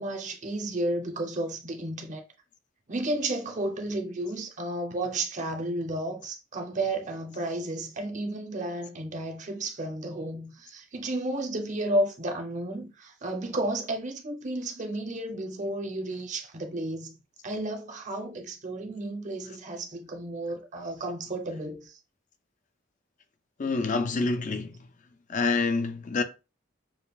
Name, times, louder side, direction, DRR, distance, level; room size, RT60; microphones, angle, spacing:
voice 1, 0.0-2.3 2.9-17.1 17.4-22.0, right 1 dB, 40° right, 0.7 m, -32 dB
voice 2, 23.6-24.8 25.3-26.2, left 3 dB, 40° left, 0.4 m, -27 dB
7.0 x 2.4 x 2.4 m
head